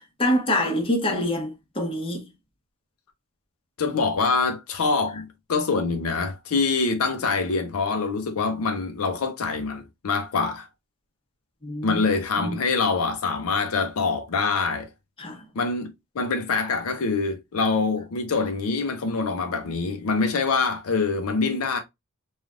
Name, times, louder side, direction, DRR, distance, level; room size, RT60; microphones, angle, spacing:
voice 1, 0.0-2.2 11.6-12.0 12.4-12.6 15.2-15.4, left 1 dB, 25° left, 0.8 m, -26 dB
voice 2, 3.8-10.7 11.8-14.9 15.6-21.8, left 4 dB, 80° left, 0.5 m, -25 dB
3.2 x 2.3 x 2.4 m
head